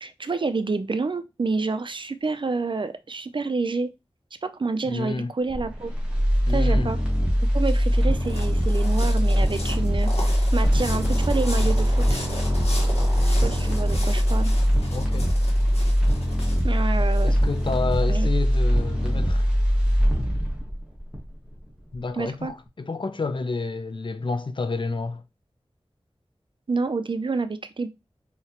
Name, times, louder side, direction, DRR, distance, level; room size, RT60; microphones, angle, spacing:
voice 1, 0.0-3.9 4.4-5.9 6.5-7.0 7.5-10.3 10.5-12.2 13.3-14.5 16.6-17.4 18.1-18.3 22.1-22.5 26.7-27.9, right 4 dB, 50° right, 0.4 m, -28 dB
voice 2, 4.8-5.3 6.4-6.9 14.9-15.3 16.9-19.5 21.9-25.2, left 3 dB, 50° left, 0.4 m, -30 dB
sound 1, 5.5-21.6 21.9-22.0, equal, 10° right, 1.4 m, -22 dB
sound 2, 7.1-18.0, left 1 dB, 80° left, 1.4 m, -38 dB
sound 3, 10.6-14.6, equal, 35° right, 1.1 m, -34 dB
4.5 x 2.8 x 2.9 m
wide cardioid pair, 65°, 11 cm